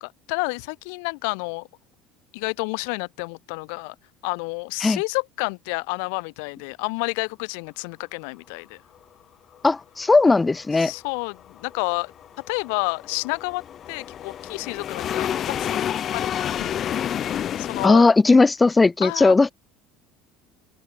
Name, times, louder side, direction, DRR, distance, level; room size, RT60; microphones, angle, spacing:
voice 1, 0.0-1.7 2.3-3.9 4.2-8.8 10.8-12.1 12.5-13.6 13.9-15.8 16.1-16.8 17.6-18.0 19.0-19.3, left 36 dB, 70° left, 1.6 m, -30 dB
voice 2, 9.6-10.9 17.8-19.5, left 3 dB, 10° left, 1.7 m, -17 dB
sound 1, 11.0-17.9, left 10 dB, 30° left, 1.7 m, -29 dB
open air
cardioid pair, 175°, 0 cm